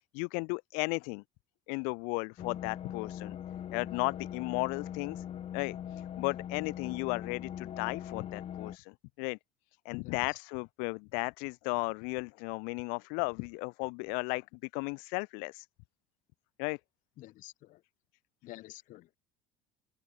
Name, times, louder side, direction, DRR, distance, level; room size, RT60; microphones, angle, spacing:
voice 1, 0.1-1.2 1.7-3.4 3.7-5.2 5.5-9.4 9.8-14.4 14.7-15.7 16.6-16.8, left 37 dB, 80° left, 1.2 m, -35 dB
sound 1, 2.4-8.8, left 10 dB, 45° left, 4.6 m, -41 dB
voice 2, 9.9-10.4 17.2-17.8 18.4-19.2, left 17 dB, 65° left, 7.3 m, -50 dB
open air
supercardioid pair, 110°, 15 cm